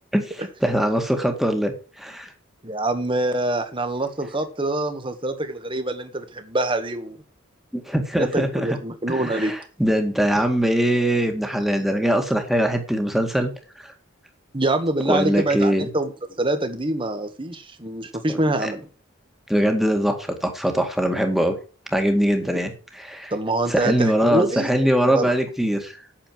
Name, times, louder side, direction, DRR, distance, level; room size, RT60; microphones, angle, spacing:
voice 1, 0.1-2.3 7.7-8.8 9.1-13.5 13.8-13.9 15.1-15.9 18.3-18.7 19.5-21.5 21.9-23.3 23.7-26.0, equal, ahead, 2.0 m, -22 dB
voice 2, 2.6-7.2 8.1-9.5 14.5-16.1 16.4-18.9 23.3-24.7 25.0-25.3, right 2 dB, 25° right, 1.6 m, -25 dB
8.9 x 6.9 x 7.5 m
head